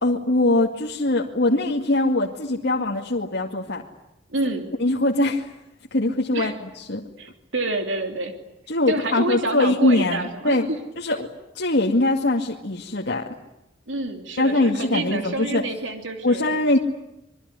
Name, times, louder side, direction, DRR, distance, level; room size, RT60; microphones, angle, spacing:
voice 1, 0.0-3.8 4.8-5.6 5.9-7.0 8.7-10.7 11.0-11.3 11.5-13.3 14.4-15.7 16.2-16.8, left 2 dB, 60° left, 0 dB, 2.2 m, -22 dB
voice 2, 4.3-4.7 6.3-6.5 7.2-8.3 8.9-10.8 11.1-11.2 13.9-16.5, right 2 dB, 75° right, 5 dB, 3.2 m, -28 dB
26.5 x 23.0 x 9.8 m, 0.89 s
head